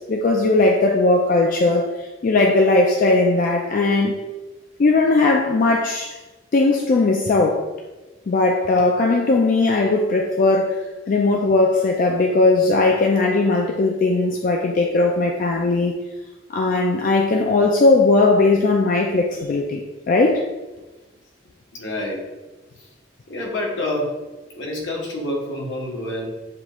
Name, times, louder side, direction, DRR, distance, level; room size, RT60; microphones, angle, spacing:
voice 1, 0.0-4.2 4.8-6.1 6.5-7.6 8.3-10.8 11.1-16.0 16.5-20.4, left 3 dB, 50° left, 1 dB, 0.4 m, -18 dB
voice 2, 21.7-22.2 23.3-24.1 24.5-26.3, left 1 dB, 75° left, -2 dB, 1.2 m, -27 dB
6.8 x 2.4 x 3.0 m, 1.1 s
head